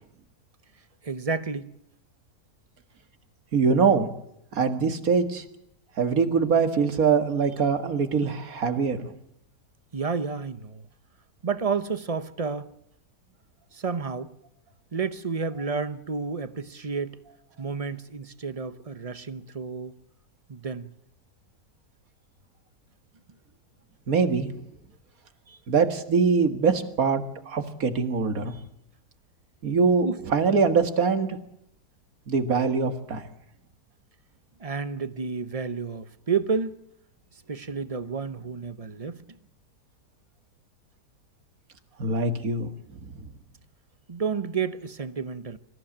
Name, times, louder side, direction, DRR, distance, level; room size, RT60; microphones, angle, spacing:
voice 1, 1.0-1.7 9.9-10.9 11.4-12.7 13.7-14.3 14.9-17.2 17.6-20.0 20.5-20.9 30.0-30.2 34.6-36.8 37.5-39.2 44.1-45.6, right 5 dB, 30° right, 0.8 m, -30 dB
voice 2, 3.5-4.1 4.5-5.4 6.0-9.1 24.1-24.5 25.7-28.5 29.6-31.4 32.3-33.2 42.0-43.1, right 5 dB, 60° right, 2.1 m, -23 dB
25.0 x 14.5 x 8.8 m
omnidirectional pair, 1.7 m